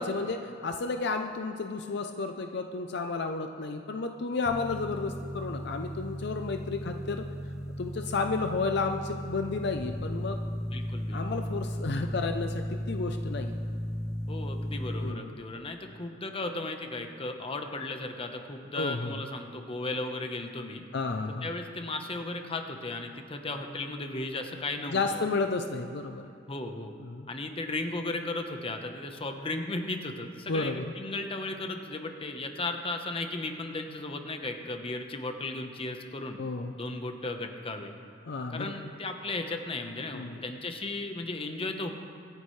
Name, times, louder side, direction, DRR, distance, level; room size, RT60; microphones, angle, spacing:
voice 1, 0.0-7.2 7.8-10.4 11.1-13.6 15.0-15.3 18.8-19.1 20.9-21.5 24.9-26.3 27.0-27.3 30.5-30.9 36.4-36.7 38.3-38.7 40.1-40.4, left 3 dB, 60° left, 5 dB, 0.6 m, -32 dB
sound 1, 4.5-15.1, equal, 15° left, 0.8 m, -35 dB
voice 2, 10.7-11.2 14.3-20.8 21.4-25.2 26.5-26.9 27.3-36.4 36.7-37.9 38.5-41.9, left 2 dB, 30° left, 5 dB, 1.0 m, -35 dB
24.5 x 10.0 x 3.2 m, 2.6 s
head